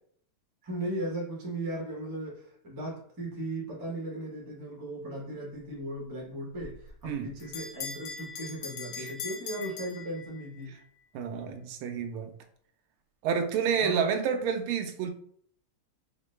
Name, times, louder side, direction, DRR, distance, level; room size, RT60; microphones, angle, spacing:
voice 1, 0.6-10.7 13.7-14.1, right 1 dB, 30° right, -4 dB, 0.3 m, -37 dB
Bell, 6.6-10.7, left 6 dB, 80° left, 1.5 m, -41 dB
voice 2, 11.1-12.3 13.2-15.1, right 7 dB, 80° right, 6 dB, 1.4 m, -29 dB
4.9 x 2.1 x 3.2 m, 0.63 s
omnidirectional pair, 2.4 m